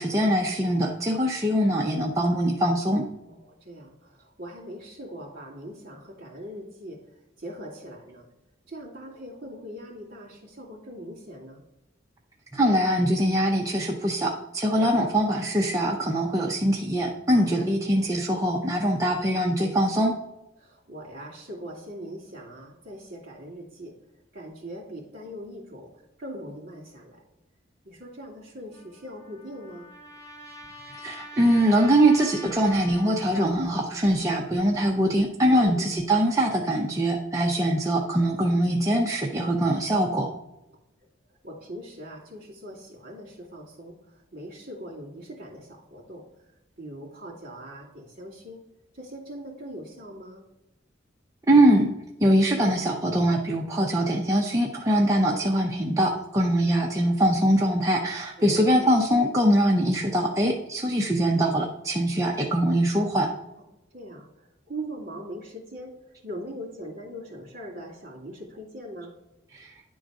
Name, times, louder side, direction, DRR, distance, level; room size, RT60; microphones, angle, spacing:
voice 1, 0.0-3.0 12.5-20.1 31.0-40.3 51.5-51.9 52.2-63.3 69.5-69.7, right 1 dB, 20° right, -1 dB, 0.6 m, -23 dB
voice 2, 3.3-8.3 8.7-11.6 14.7-15.1 17.3-17.7 20.6-24.0 24.3-27.2 27.8-29.9 35.5-35.9 41.4-46.3 46.8-48.6 48.9-50.4 58.4-58.9 63.9-69.2, equal, 55° right, -1 dB, 2.4 m, -41 dB
Trumpet, 28.7-33.5, left 2 dB, 20° left, 1.6 m, -45 dB
10.0 x 3.9 x 4.8 m, 0.90 s
head